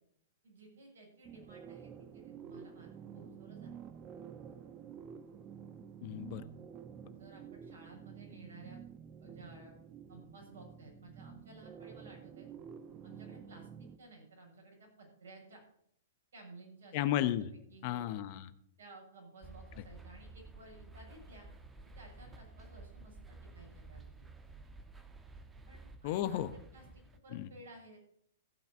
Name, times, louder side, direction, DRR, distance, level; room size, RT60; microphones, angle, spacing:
voice 1, 0.4-3.7 7.2-8.8 9.2-9.7 10.1-12.5 13.0-13.7 14.0-15.6 16.3-17.2 17.7-18.1 18.8-21.5 21.9-24.3 25.7-28.0, right 2 dB, 70° right, 0 dB, 6.7 m, -56 dB
sound 1, 1.2-14.0, right 7 dB, 30° right, 1.0 m, -50 dB
voice 2, 6.0-6.5 16.9-17.5 17.8-18.5 26.0-26.5 27.3-27.5, left 12 dB, 45° left, 14 dB, 0.8 m, -33 dB
sound 2, 19.4-27.2, right 3 dB, 10° right, 1.3 m, -53 dB
14.5 x 5.8 x 7.2 m, 0.69 s
figure-of-eight pair, 110°, 0 cm